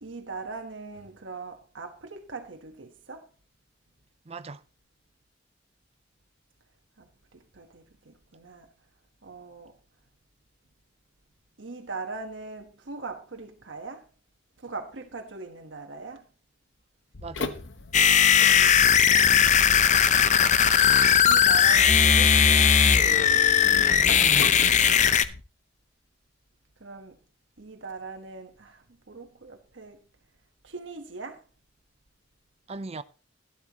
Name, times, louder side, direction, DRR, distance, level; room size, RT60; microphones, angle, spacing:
voice 1, 0.0-3.3 7.0-8.7 9.2-9.7 11.6-14.1 14.6-16.2 19.8-20.4 21.2-22.8 26.8-27.2 27.6-30.0 30.6-31.4, right 4 dB, 85° right, 1.3 m, -40 dB
voice 2, 4.3-4.6 17.2-17.6 24.1-24.6 32.7-33.0, right 3 dB, 35° right, 0.6 m, -37 dB
sound 1, 17.1-25.4, left 3 dB, 80° left, 1.0 m, -39 dB
sound 2, 17.9-25.2, left 8 dB, 40° left, 0.6 m, -19 dB
12.0 x 12.0 x 3.0 m
head